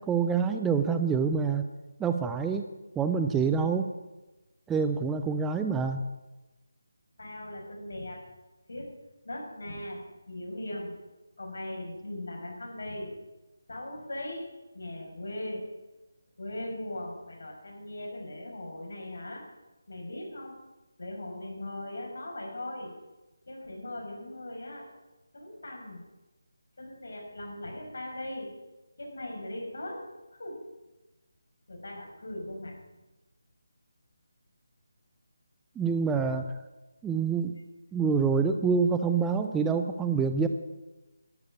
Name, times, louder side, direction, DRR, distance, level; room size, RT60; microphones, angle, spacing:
voice 1, 0.0-1.7 2.0-2.7 3.0-3.9 4.7-6.0 35.8-36.6 37.0-37.5 37.9-40.5, right 5 dB, 5° right, 7 dB, 0.3 m, -26 dB
voice 2, 7.2-8.2 8.7-8.9 9.2-11.0 11.4-13.2 13.7-15.7 16.4-19.5 19.9-20.6 21.0-22.9 23.5-24.9 25.3-26.0 26.8-28.5 29.0-30.1 30.4-30.6 31.7-32.8, left 1 dB, 65° left, 0 dB, 5.5 m, -39 dB
12.5 x 7.2 x 9.6 m, 1.1 s
figure-of-eight pair, 175°, 0 cm